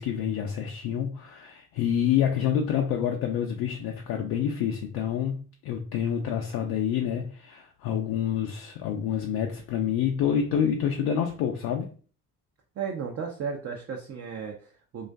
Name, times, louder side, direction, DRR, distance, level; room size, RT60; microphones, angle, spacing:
voice 1, 0.0-11.9, left 8 dB, 60° left, 2 dB, 0.5 m, -27 dB
voice 2, 12.8-15.1, right 6 dB, 35° right, 2 dB, 0.5 m, -34 dB
2.4 x 2.3 x 2.2 m, 0.39 s
hypercardioid pair, 45°, 41 cm